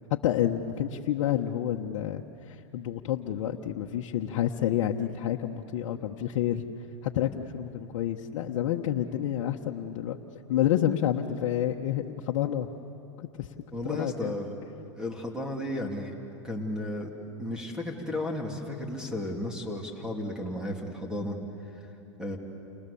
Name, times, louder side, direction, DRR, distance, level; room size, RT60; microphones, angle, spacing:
voice 1, 0.1-6.6 7.0-10.2 10.5-12.7 13.4-13.5 13.8-14.3, left 11 dB, 65° left, 0 dB, 1.2 m, -29 dB
voice 2, 13.7-14.6 15.0-16.2 16.4-17.1 17.4-21.4 22.2-22.4, left 1 dB, 5° right, 1 dB, 3.2 m, -34 dB
30.0 x 27.0 x 7.1 m, 2.8 s
hypercardioid pair, 115°, 16 cm